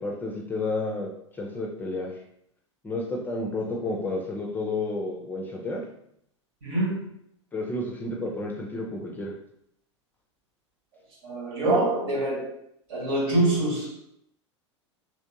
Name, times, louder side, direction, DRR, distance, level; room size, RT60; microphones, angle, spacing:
voice 1, 0.0-2.1 2.8-5.8 7.5-9.3, left 2 dB, 10° left, 0.5 m, -31 dB
voice 2, 6.6-7.0 11.2-12.5 12.9-14.0, right 2 dB, 55° right, 1.4 m, -25 dB
3.3 x 3.0 x 2.8 m
figure-of-eight pair, 85°, 15 cm